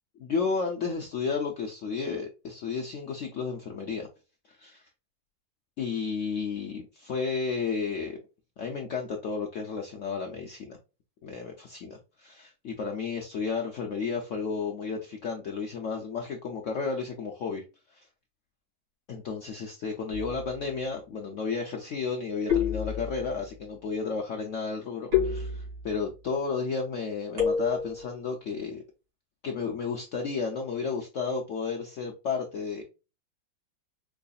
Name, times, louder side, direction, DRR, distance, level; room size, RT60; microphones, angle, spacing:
voice 1, 0.2-4.1 4.5-4.9 5.8-8.2 8.6-10.8 11.2-17.6 17.9-18.1 19.1-28.8 29.4-32.8, left 5 dB, 65° left, 0.7 m, -32 dB
sound 1, 20.1-20.6 22.5-23.4 25.1-26.1 27.4-28.1, left 7 dB, 75° right, 2.6 m, -29 dB
4.7 x 2.6 x 2.3 m
omnidirectional pair, 1.9 m